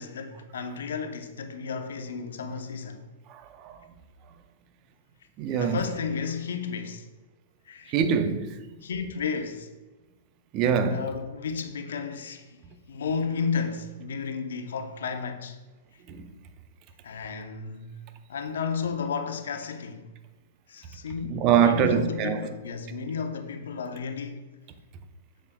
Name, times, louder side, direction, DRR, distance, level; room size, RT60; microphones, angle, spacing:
voice 1, 0.0-3.1 5.5-7.1 7.7-8.0 8.8-9.7 10.9-12.6 12.9-15.6 17.0-18.0 18.3-20.1 20.7-24.4, left 5 dB, 70° left, 0.8 m, -33 dB
voice 2, 3.3-3.7 5.4-5.8 7.9-8.6 10.5-11.1 16.1-16.3 21.2-22.5, right 7 dB, 40° right, 0.7 m, -24 dB
8.4 x 6.4 x 2.3 m
hypercardioid pair, 110°, 0 cm